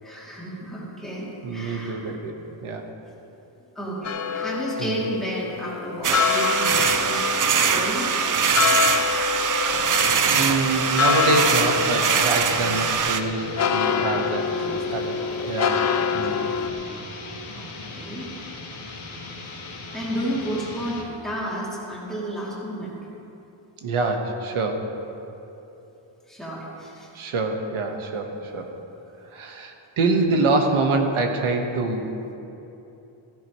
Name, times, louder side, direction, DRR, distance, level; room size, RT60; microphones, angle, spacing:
voice 1, 0.0-2.1 3.7-8.1 14.5-15.0 17.4-18.3 19.9-23.0 26.3-27.2, right 1 dB, ahead, -7 dB, 2.8 m, -32 dB
voice 2, 1.4-2.3 2.6-2.8 4.8-5.0 10.3-14.5 14.9-15.2 15.5-15.9 16.1-16.5 23.8-24.9 27.1-28.7 29.3-32.1, right 3 dB, 85° right, 3 dB, 1.5 m, -25 dB
sound 1, 4.0-16.7, left 7 dB, 35° left, 0.5 m, -26 dB
sound 2, 6.0-13.2, right 6 dB, 40° right, 0.5 m, -22 dB
sound 3, 9.7-21.1, left 3 dB, 75° left, 2.1 m, -38 dB
15.5 x 14.5 x 3.2 m, 2.9 s
wide cardioid pair, 170°, 49 cm